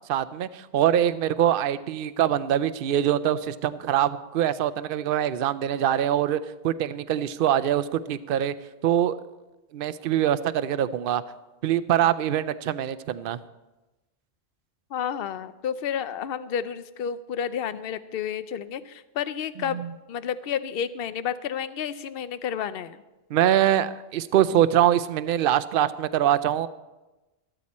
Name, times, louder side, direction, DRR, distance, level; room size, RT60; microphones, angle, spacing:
voice 1, 0.1-8.5 8.8-9.2 9.7-11.2 11.6-13.4 19.7-19.9 23.3-26.7, right 11 dB, 65° right, 15 dB, 0.7 m, -23 dB
voice 2, 14.9-19.8 20.1-23.0, left 8 dB, 70° left, 14 dB, 0.8 m, -31 dB
13.5 x 13.0 x 4.2 m, 1.1 s
omnidirectional pair, 1.1 m